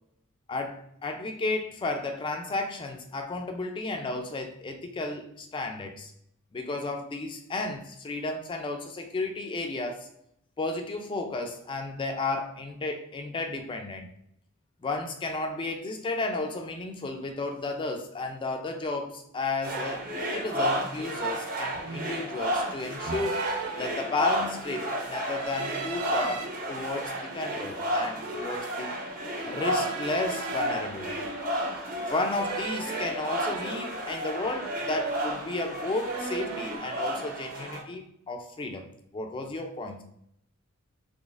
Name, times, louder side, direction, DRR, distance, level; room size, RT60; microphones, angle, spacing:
voice 1, 0.5-6.1 6.5-10.1 10.6-14.1 14.8-20.0 20.3-23.5 23.8-29.0 29.4-31.2 32.0-38.9 39.1-40.0, left 2 dB, 25° left, 4 dB, 0.3 m, -33 dB
sound 1, 19.6-37.8, equal, 40° right, 0.8 m, -32 dB
sound 2, 20.6-20.9 21.7-22.3 23.0-24.5 25.3-26.5 27.0-28.6 29.4-31.7 32.3-34.6 34.8-35.6 35.8-36.8, right 5 dB, 90° right, 0.5 m, -39 dB
3.9 x 3.1 x 2.4 m, 0.74 s
head